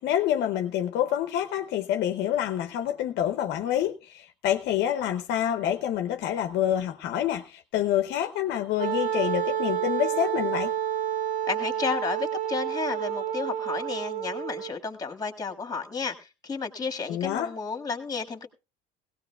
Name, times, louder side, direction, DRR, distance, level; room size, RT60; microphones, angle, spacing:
voice 1, 0.0-10.7 17.1-17.5, left 11 dB, 60° left, 7 dB, 0.8 m, -27 dB
Wind instrument woodwind instrument, 8.8-14.7, right 10 dB, 70° right, 3.5 m, -29 dB
voice 2, 11.5-18.5, left 5 dB, 20° left, 4 dB, 1.8 m, -32 dB
17.5 x 17.0 x 2.3 m, 0.30 s
supercardioid pair, 95°, 20 cm